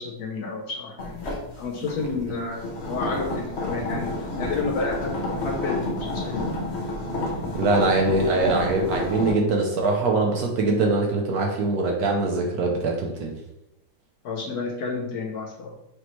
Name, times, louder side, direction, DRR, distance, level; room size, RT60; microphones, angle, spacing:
voice 1, 0.0-6.5 14.2-15.8, left 3 dB, 70° left, 0 dB, 1.0 m, -31 dB
sound 1, 1.0-9.3, left 1 dB, 40° left, 1.1 m, -30 dB
voice 2, 7.6-13.4, right 3 dB, 70° right, 1 dB, 0.9 m, -23 dB
5.0 x 3.0 x 2.9 m, 0.87 s
omnidirectional pair, 2.1 m